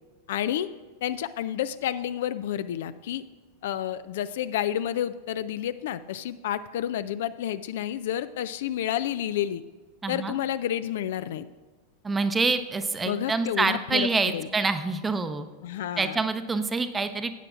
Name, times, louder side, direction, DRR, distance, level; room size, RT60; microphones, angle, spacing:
voice 1, 0.3-0.7 1.0-3.2 3.6-9.6 10.1-11.5 13.0-14.5 15.6-16.2, left 11 dB, 55° left, 14 dB, 0.3 m, -30 dB
voice 2, 10.0-10.3 12.0-15.5 16.0-17.4, right 4 dB, 15° right, 10 dB, 0.7 m, -26 dB
14.5 x 8.7 x 2.5 m, 1.3 s
figure-of-eight pair, 90°, 0 cm